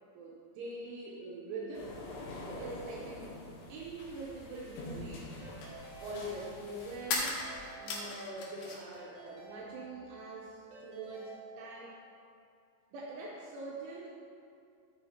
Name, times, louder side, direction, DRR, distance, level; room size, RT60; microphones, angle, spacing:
voice 1, 0.1-2.0 2.4-3.3 3.7-5.3 6.0-7.4 7.8-12.0 12.9-14.1, right 2 dB, 80° right, -3 dB, 3.2 m, -43 dB
sound 1, 1.7-7.6, left 1 dB, 85° left, 4.3 m, -47 dB
sound 2, 4.8-4.9 7.0-9.0 9.3-10.1, left 3 dB, 70° left, 2.7 m, -37 dB
Keyboard (musical) / Ringtone, 5.4-6.7 7.2-8.5 8.9-10.3 10.7-12.0, right 3 dB, 55° right, 2.0 m, -51 dB
13.5 x 8.0 x 2.8 m, 2.4 s
omnidirectional pair, 5.8 m